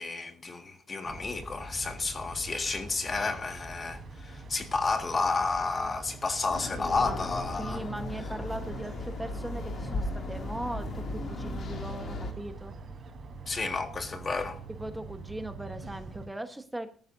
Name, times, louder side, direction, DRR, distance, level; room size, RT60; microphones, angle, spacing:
voice 1, 0.0-7.9 13.5-14.6, left 3 dB, 35° left, 1.8 m, -31 dB
sound 1, 1.0-16.3, right 3 dB, 50° right, 3.9 m, -45 dB
sound 2, 6.5-12.3, left 2 dB, 55° left, 2.5 m, -36 dB
voice 2, 6.8-7.3 7.6-12.7 14.7-16.9, right 1 dB, 10° right, 1.2 m, -39 dB
19.5 x 13.5 x 2.7 m
cardioid pair, 90°, 0 cm